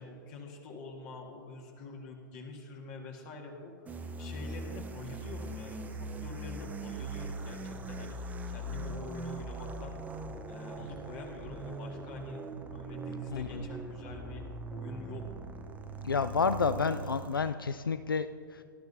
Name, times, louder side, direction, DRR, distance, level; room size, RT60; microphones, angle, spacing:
voice 1, 0.0-10.0 10.5-12.4 12.7-14.4 14.7-15.3 17.1-17.2, left 3 dB, 40° left, 1 dB, 1.7 m, -46 dB
sound 1, 3.9-17.5, right 2 dB, 15° right, 0.8 m, -41 dB
voice 2, 13.3-13.6 16.0-18.6, left 5 dB, 85° left, 12 dB, 0.4 m, -30 dB
19.0 x 12.0 x 2.7 m, 2.3 s
figure-of-eight pair, 105°, 11 cm